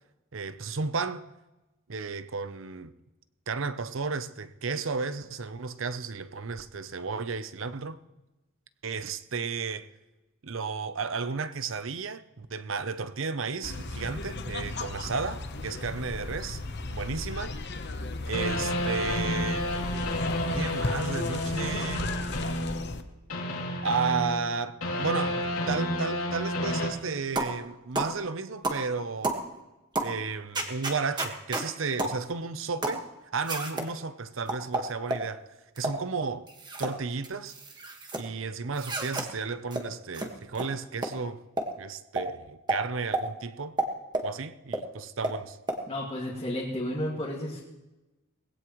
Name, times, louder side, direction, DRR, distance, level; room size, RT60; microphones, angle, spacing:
voice 1, 0.3-1.2 1.9-2.9 3.5-8.0 8.8-9.9 10.4-16.6 16.9-17.6 18.3-19.7 20.5-22.1 23.8-29.4 30.0-33.1 33.3-35.5 35.8-36.5 36.8-37.5 38.1-41.4 41.8-43.7 44.2-45.6, right 4 dB, 65° right, 0.7 m, -33 dB
sound 1, 13.6-23.0, left 2 dB, 55° left, 1.0 m, -36 dB
sound 2, 18.3-23.0 23.3-26.9, left 1 dB, 90° left, 2.7 m, -30 dB
sound 3, 27.4-27.6 27.9-28.1 28.6-28.8 29.2-29.4 29.9-30.1 30.5-31.7 32.0-32.2 32.8-33.0 33.5-33.9 34.5-35.3 35.8-36.0 36.5-36.9 37.2-38.2 38.7-39.3 39.7-39.8 40.1-40.3 40.5-40.7 41.0-41.1 41.6-41.7 42.2-42.3 42.7-42.8 43.1-43.2 43.8-44.3 44.7-44.8 45.2-45.4 45.7-45.8, right 2 dB, 20° right, 1.6 m, -30 dB
voice 2, 45.9-47.6, left 1 dB, 30° left, 2.2 m, -32 dB
21.0 x 16.5 x 3.1 m
head